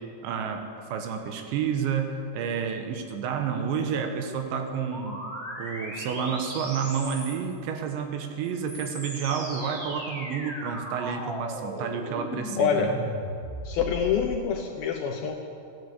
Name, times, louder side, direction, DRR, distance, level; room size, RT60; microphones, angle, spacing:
voice 1, 0.2-5.2 5.6-13.0, right 6 dB, 80° right, 5 dB, 3.5 m, -30 dB
sound 1, 4.9-7.6 8.4-14.4, equal, 20° right, 3.3 m, -37 dB
voice 2, 12.6-13.0 13.7-15.3, left 6 dB, 75° left, 3 dB, 2.3 m, -26 dB
14.5 x 10.5 x 8.2 m, 2.5 s
omnidirectional pair, 5.2 m